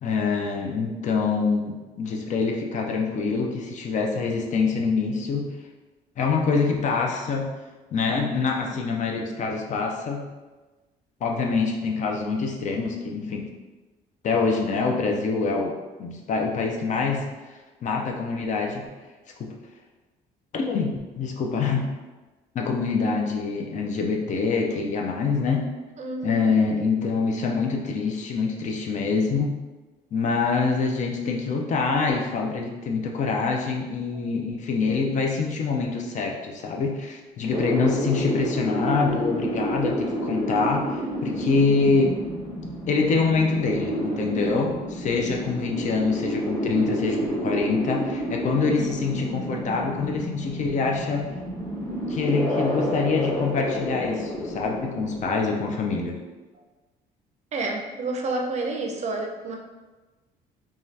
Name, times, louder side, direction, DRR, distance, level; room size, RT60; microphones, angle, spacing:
voice 1, 0.0-5.5 6.2-7.5 7.9-10.3 11.2-13.5 14.2-15.7 16.0-17.2 17.8-18.9 19.4-19.5 20.5-21.9 22.5-25.7 26.2-29.5 30.1-42.1 42.9-51.3 52.1-56.1, left 4 dB, 45° left, 1 dB, 0.5 m, -25 dB
voice 2, 26.0-26.5 41.8-42.0 57.5-59.6, right 2 dB, 40° right, 2 dB, 0.5 m, -29 dB
sound 1, 37.5-55.3, equal, 15° left, 0.8 m, -29 dB
2.7 x 2.3 x 3.2 m, 1.2 s
cardioid pair, 110°, 17 cm